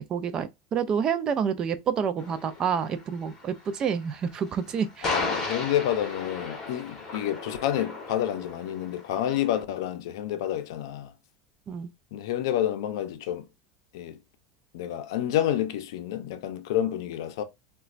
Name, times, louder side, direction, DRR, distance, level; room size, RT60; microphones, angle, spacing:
voice 1, 0.0-5.2 11.7-11.9, right 7 dB, 30° right, 0.4 m, -28 dB
sound 1, 2.2-9.6, left 3 dB, 20° left, 1.2 m, -35 dB
voice 2, 5.0-11.1 12.1-13.5 13.9-14.2 14.7-17.4, left 11 dB, 80° left, 0.5 m, -29 dB
4.1 x 2.2 x 2.4 m
supercardioid pair, 135°, 2 cm